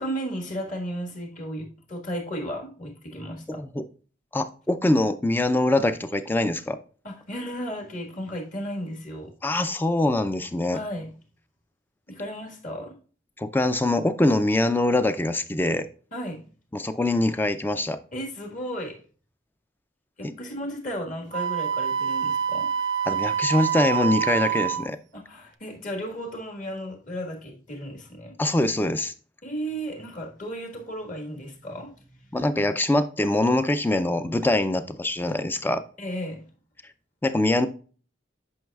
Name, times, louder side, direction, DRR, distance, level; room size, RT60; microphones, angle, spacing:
voice 1, 0.0-3.6 7.0-9.3 10.7-11.1 12.1-13.0 16.1-16.5 18.1-19.0 20.2-22.7 25.1-28.4 29.4-32.4 36.0-36.4, equal, 40° left, 1.5 m, -34 dB
voice 2, 3.5-3.8 4.3-6.8 9.4-10.8 13.4-15.9 16.7-18.0 20.2-20.3 23.1-25.0 28.4-29.1 32.3-35.8 37.2-37.7, left 1 dB, 10° left, 0.4 m, -23 dB
Wind instrument woodwind instrument, 21.3-24.9, right 8 dB, 75° right, 0.6 m, -26 dB
9.3 x 5.4 x 2.3 m
head